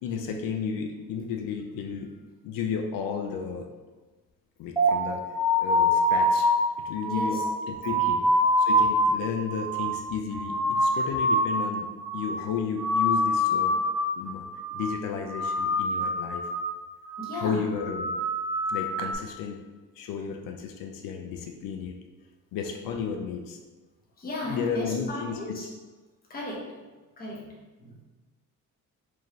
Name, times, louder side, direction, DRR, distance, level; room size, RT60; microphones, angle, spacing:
voice 1, 0.0-2.1 2.4-3.7 4.6-5.2 5.6-6.5 6.8-7.4 7.7-8.3 8.6-13.8 14.2-14.5 14.7-16.5 17.3-18.1 18.7-19.6 20.0-22.0 22.5-23.6 24.5-25.6, left 6 dB, 85° left, 3 dB, 0.5 m, -33 dB
sound 1, 4.8-11.7 12.0-12.5 12.8-14.2 14.5-15.0 15.3-16.7 17.1-17.4 17.8-19.1, left 1 dB, 10° right, 0.4 m, -25 dB
voice 2, 7.1-7.4 7.8-8.1 17.2-17.7 24.2-25.7 26.3-26.7 27.2-28.0, left 1 dB, 25° left, -5 dB, 1.0 m, -35 dB
4.5 x 2.7 x 3.0 m, 1.3 s
cardioid pair, 160°, 33 cm